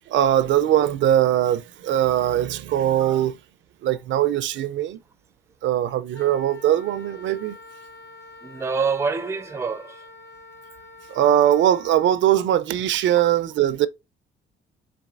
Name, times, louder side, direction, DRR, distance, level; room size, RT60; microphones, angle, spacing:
voice 1, 0.1-3.4 3.8-5.0 5.6-7.6 11.1-13.9, right 11 dB, 75° right, 0.5 m, -21 dB
Wind instrument woodwind instrument, 6.1-12.2, left 2 dB, 65° left, 1.0 m, -46 dB
voice 2, 8.4-10.0, right 5 dB, 15° right, 0.5 m, -27 dB
4.0 x 3.8 x 2.4 m
cardioid pair, 90°, 20 cm